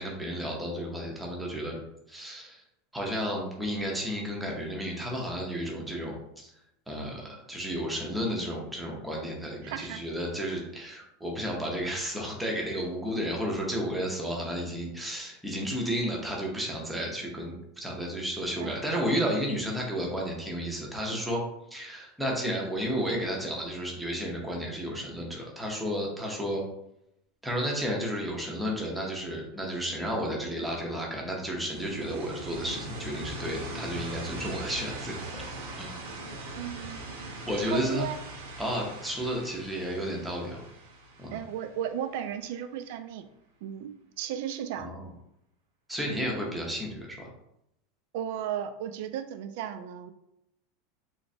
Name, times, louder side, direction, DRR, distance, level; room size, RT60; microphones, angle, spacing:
voice 1, 0.0-1.8 2.1-2.6 2.9-6.5 6.9-21.4 21.7-26.6 27.4-35.2 35.8-35.9 37.5-38.1 38.6-40.6 41.2-41.4 44.8-45.1 45.9-47.3, equal, 5° right, -2 dB, 0.6 m, -32 dB
voice 2, 9.6-10.1 18.6-18.8 36.5-38.2 41.3-43.3 43.6-45.0 48.1-50.1, right 9 dB, 60° right, 10 dB, 0.3 m, -35 dB
sound 1, 31.7-42.4, right 1 dB, 85° right, 0.9 m, -40 dB
3.2 x 3.1 x 2.6 m, 0.81 s
supercardioid pair, 170°, 0 cm